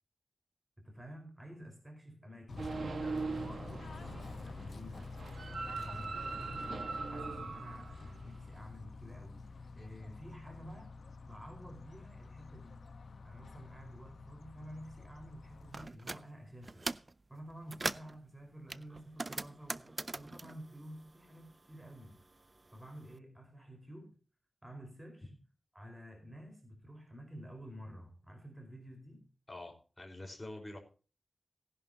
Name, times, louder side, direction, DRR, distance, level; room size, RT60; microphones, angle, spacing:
voice 1, 0.8-5.2 5.7-10.9 11.2-12.8 13.2-16.9 17.3-22.2 22.7-24.2 24.6-25.3 25.7-29.3, equal, 15° right, 3 dB, 4.5 m, -51 dB
Bird / Train, 2.5-15.9, left 4 dB, 90° left, 1.0 m, -48 dB
sound 1, 2.6-8.6, right 4 dB, 90° right, 1.5 m, -41 dB
sound 2, 15.7-16.2 16.6-17.1 17.5-18.2 18.7-21.6 21.9-23.0, right 2 dB, 35° right, 0.5 m, -41 dB
voice 2, 29.5-30.8, left 1 dB, 20° left, 2 dB, 4.6 m, -46 dB
17.5 x 11.0 x 2.8 m, 0.37 s
wide cardioid pair, 100°, 0 cm